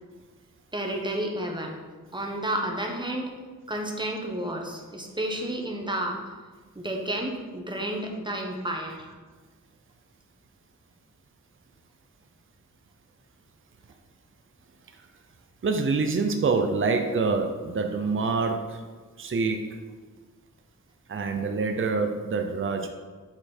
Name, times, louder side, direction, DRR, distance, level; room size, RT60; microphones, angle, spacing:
voice 1, 0.7-1.7 2.1-3.3 3.7-6.2 6.7-9.1, right 1 dB, 15° right, 1 dB, 1.0 m, -31 dB
voice 2, 15.6-18.8 19.2-19.6 21.1-22.9, right 4 dB, 40° right, 4 dB, 0.6 m, -26 dB
7.6 x 4.4 x 4.4 m, 1.4 s
wide cardioid pair, 115°, 32 cm